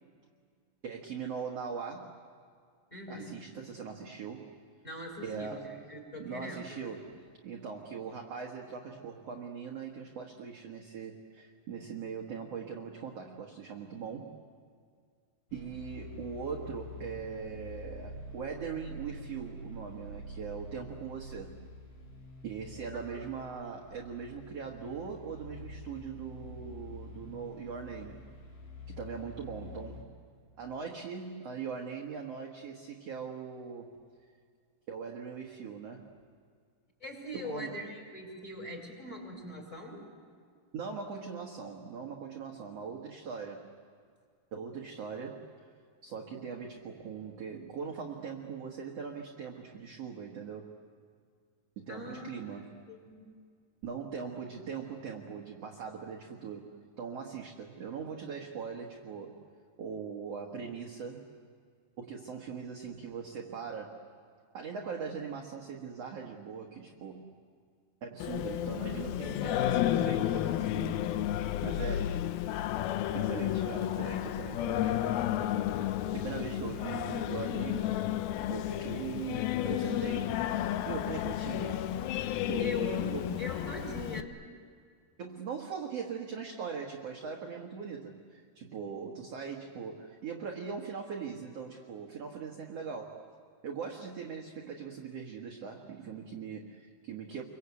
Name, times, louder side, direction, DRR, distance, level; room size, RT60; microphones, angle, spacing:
voice 1, 0.8-2.1 3.1-4.5 5.2-5.8 6.2-14.4 15.5-21.6 22.4-28.2 28.9-30.1 30.6-34.0 34.9-36.1 37.3-37.8 40.7-43.7 44.5-45.5 46.0-50.7 51.8-52.8 53.8-59.4 59.8-61.3 62.0-64.0 64.5-67.3 68.0-71.2 71.6-72.2 73.1-75.3 76.1-78.0 78.5-80.5 80.8-81.9 82.5-83.3 85.2-93.2 93.6-97.4, right 6 dB, 55° right, 0 dB, 2.0 m, -41 dB
voice 2, 2.9-3.4 4.8-6.8 22.9-23.2 37.0-40.1 51.9-52.5 52.9-53.2 82.6-83.0 83.4-84.3, left 2 dB, 5° left, 0 dB, 5.6 m, -41 dB
sound 1, 15.5-30.1, left 1 dB, 55° left, 4.6 m, -47 dB
Singing, 68.2-84.2, left 12 dB, 75° left, 2.4 m, -32 dB
28.5 x 23.5 x 8.4 m, 2.1 s
omnidirectional pair, 4.7 m